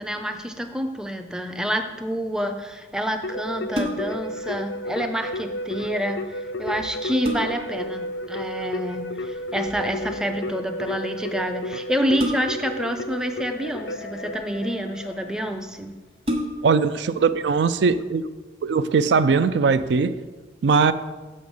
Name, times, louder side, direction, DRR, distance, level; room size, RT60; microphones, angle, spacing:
voice 1, 0.0-15.9, equal, 5° right, 0.4 m, -28 dB
Keyboard (musical), 3.2-15.7, left 1 dB, 80° left, 0.5 m, -32 dB
sound 1, 3.5-4.3 6.3-6.4 6.9-7.8 9.4-9.7 12.2-12.8 13.8-14.5 15.2-15.3 15.6-15.7 16.2-16.9 17.4-17.5, equal, 30° right, 1.0 m, -29 dB
voice 2, 16.6-18.2 18.6-20.1 20.6-20.9, right 5 dB, 80° right, 0.4 m, -20 dB
6.6 x 6.3 x 5.4 m
head